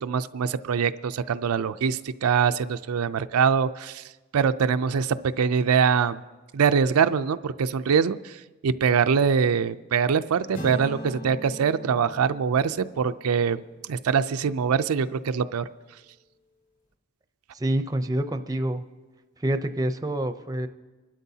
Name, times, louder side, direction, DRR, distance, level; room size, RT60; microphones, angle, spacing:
voice 1, 0.0-4.0 4.3-6.2 6.5-13.6 13.9-15.6, right 6 dB, 85° right, 11 dB, 0.4 m, -23 dB
sound 1, 10.5-14.6, right 1 dB, 45° left, 4.0 m, -41 dB
voice 2, 17.5-18.8 19.4-20.7, right 1 dB, 15° right, 8 dB, 0.5 m, -27 dB
25.5 x 12.0 x 2.8 m, 1.2 s
head